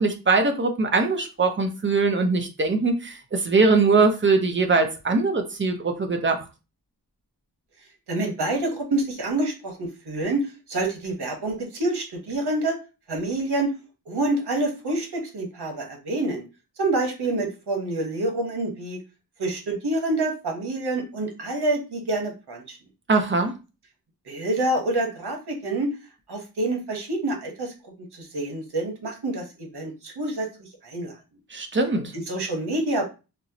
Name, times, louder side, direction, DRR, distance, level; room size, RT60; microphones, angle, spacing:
voice 1, 0.0-6.4 23.1-23.6 31.5-32.1, right 3 dB, 30° right, 5 dB, 0.6 m, -22 dB
voice 2, 8.1-12.8 13.1-13.7 14.1-16.5 16.8-19.0 19.4-22.8 24.3-26.0 26.3-31.2 32.1-33.0, right 2 dB, 85° right, 1 dB, 1.0 m, -27 dB
4.2 x 2.0 x 2.7 m, 0.30 s
wide cardioid pair, 115°, 39 cm